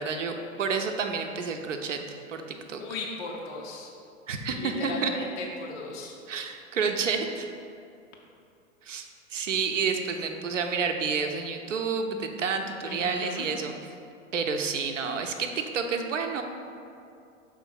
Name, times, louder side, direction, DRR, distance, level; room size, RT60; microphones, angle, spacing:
voice 1, 0.0-2.0 2.3-2.8 4.3-5.1 6.3-7.5 8.8-13.7 14.3-16.4, right 5 dB, 65° right, 5 dB, 0.8 m, -29 dB
voice 2, 2.8-3.9 4.5-6.1 12.8-13.5, left 3 dB, 20° left, -2 dB, 0.4 m, -36 dB
6.3 x 3.7 x 5.5 m, 2.5 s
figure-of-eight pair, 95°, 40 cm